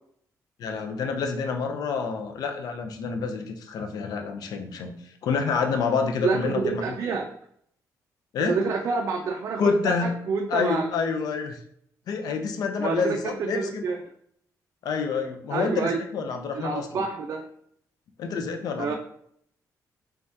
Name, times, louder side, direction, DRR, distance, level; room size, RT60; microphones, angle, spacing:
voice 1, 0.6-4.9 5.2-7.0 8.3-8.6 9.6-10.2 10.5-11.6 12.1-13.8 14.8-17.0 18.2-18.9, left 5 dB, 75° left, 4 dB, 0.5 m, -28 dB
voice 2, 6.2-7.3 8.4-10.9 12.8-14.0 15.5-16.0 16.5-17.5 18.8-18.9, right 5 dB, 50° right, 2 dB, 0.3 m, -28 dB
3.4 x 3.3 x 2.7 m, 0.68 s
cardioid pair, 145°, 7 cm